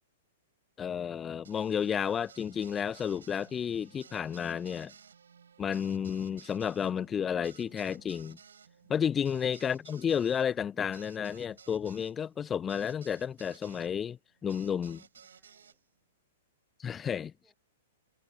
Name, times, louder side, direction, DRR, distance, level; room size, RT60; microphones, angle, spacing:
voice 1, 0.8-4.9 5.6-8.4 8.9-14.2 14.4-15.0 16.8-17.3, left 8 dB, 20° left, 0.3 m, -31 dB
sound 1, 1.4-13.9 14.5-15.8, right 7 dB, 65° right, 2.6 m, -56 dB
voice 2, 14.4-15.9 17.3-17.5, right 3 dB, 10° right, 7.2 m, -75 dB
figure-of-eight pair, 105°, 0 cm